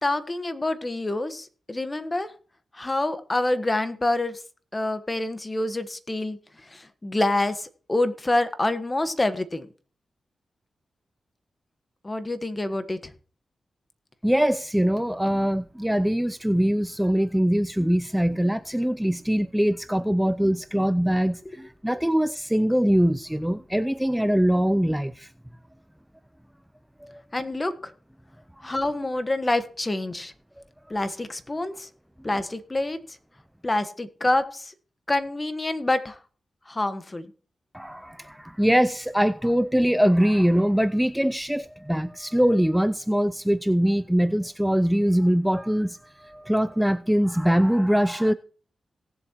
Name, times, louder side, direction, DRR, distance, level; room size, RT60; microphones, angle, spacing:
voice 1, 0.0-2.3 2.7-4.4 4.7-9.7 12.0-13.1 27.3-27.9 28.6-30.3 30.9-31.9 32.2-33.0 33.6-34.7 35.1-36.2 36.7-37.3, left 2 dB, 30° left, 1.3 m, -27 dB
voice 2, 14.2-25.3 27.0-27.2 37.7-48.3, equal, 5° right, 0.5 m, -23 dB
18.0 x 7.3 x 3.0 m
cardioid pair, 50°, 0 cm